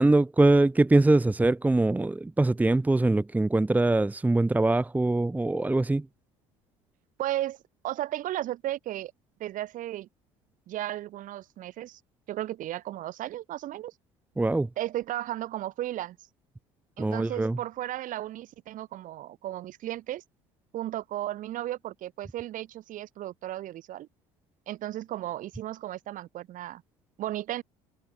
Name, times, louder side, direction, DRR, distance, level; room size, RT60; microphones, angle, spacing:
voice 1, 0.0-6.0 14.4-14.7 17.0-17.6, right 2 dB, 10° right, 1.0 m, -23 dB
voice 2, 7.2-7.6 7.8-9.1 9.4-10.1 10.7-12.0 12.3-13.9 14.8-16.2 17.0-20.2 20.7-24.1 24.7-26.8 27.2-27.6, right 14 dB, 60° right, 7.8 m, -34 dB
hypercardioid pair, 75°, 15 cm